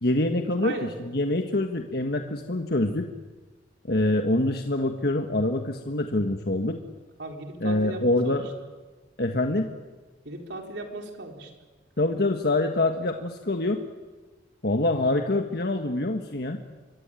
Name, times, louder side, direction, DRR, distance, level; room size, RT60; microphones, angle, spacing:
voice 1, 0.0-3.1 3.9-6.8 7.6-8.4 9.2-9.7 12.0-13.8 14.6-16.6, left 2 dB, 60° left, 5 dB, 1.5 m, -25 dB
voice 2, 0.6-0.9 7.2-8.4 10.2-11.5, right 2 dB, 70° right, 3 dB, 4.5 m, -36 dB
25.5 x 23.5 x 9.1 m, 1.3 s
head